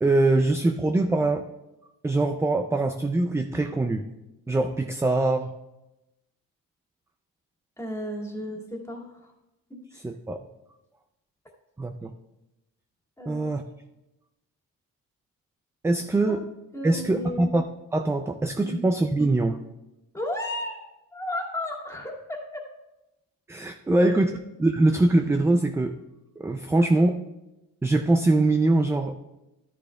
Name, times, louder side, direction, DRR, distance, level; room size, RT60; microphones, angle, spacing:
voice 1, 0.0-1.5 2.0-4.0 4.5-5.5 10.0-10.4 11.8-12.1 13.3-13.6 15.8-16.4 16.8-17.6 17.9-19.6 23.5-26.0 26.4-27.2 27.8-29.2, right 2 dB, 10° right, 6 dB, 0.3 m, -23 dB
voice 2, 7.8-9.3 9.7-9.8 13.2-13.5 16.3-16.4 16.7-17.5 18.6-18.8 20.1-20.9 21.1-22.7 23.9-24.1, left 1 dB, 10° left, -2 dB, 2.2 m, -34 dB
13.0 x 10.0 x 2.3 m, 0.96 s
cardioid pair, 120°, 34 cm